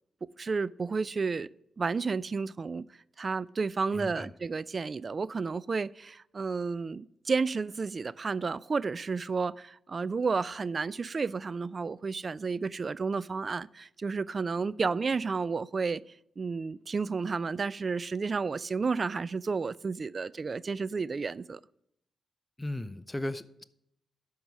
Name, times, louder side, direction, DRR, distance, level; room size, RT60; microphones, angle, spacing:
voice 1, 0.2-1.5 1.8-2.8 3.2-16.0 16.4-21.6, right 4 dB, 45° right, 0.3 m, -31 dB
voice 2, 3.9-4.3 22.6-23.6, left 1 dB, 15° left, 0.6 m, -36 dB
12.0 x 4.7 x 6.1 m
supercardioid pair, 55°, 0 cm